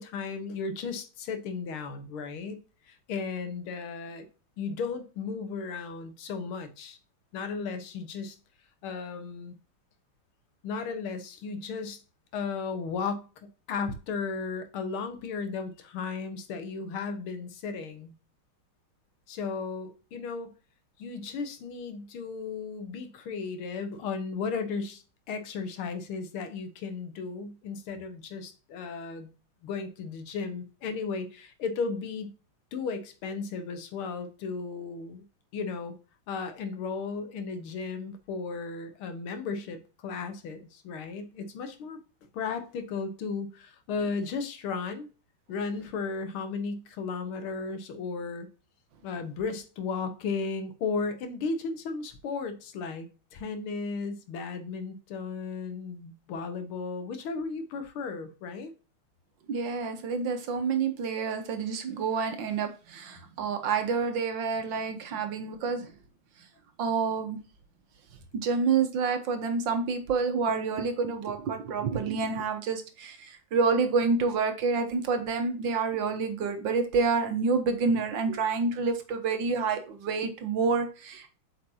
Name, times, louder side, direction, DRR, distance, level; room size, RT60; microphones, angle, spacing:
voice 1, 0.0-2.6 2.9-4.3 4.6-7.0 7.3-8.4 8.8-9.6 10.6-12.0 12.3-13.3 13.7-18.1 19.3-20.5 21.0-29.3 29.6-32.3 32.7-35.2 35.5-36.0 36.3-42.0 42.3-45.1 45.5-48.5 49.0-58.7, left 4 dB, 90° left, 1.9 m, -35 dB
voice 2, 59.5-65.9 66.8-67.4 68.3-81.3, right 5 dB, 65° right, 1.6 m, -28 dB
8.1 x 5.2 x 2.7 m
omnidirectional pair, 2.3 m